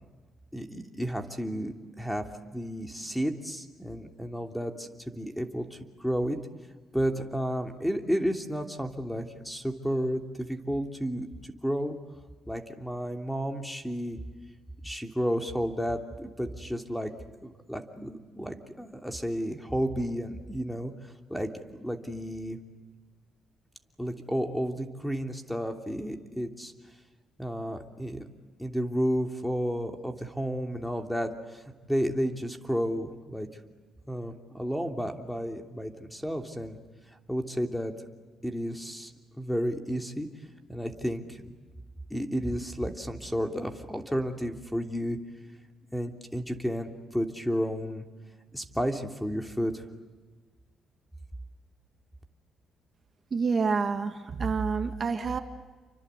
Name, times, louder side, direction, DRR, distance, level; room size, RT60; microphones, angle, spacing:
voice 1, 0.5-6.4 6.9-12.0 12.5-14.2 14.8-17.1 17.4-21.5 21.8-22.6 24.0-26.7 27.4-28.3 28.6-31.6 31.9-33.5 34.1-36.8 37.3-37.9 38.4-39.1 39.4-40.3 40.7-41.6 42.1-45.2 45.9-48.0 48.5-49.8, equal, 5° left, 4 dB, 2.9 m, -32 dB
voice 2, 53.3-55.4, right 5 dB, 40° right, 6 dB, 1.9 m, -28 dB
29.0 x 24.5 x 8.2 m, 1.3 s
cardioid pair, 90°, 0 cm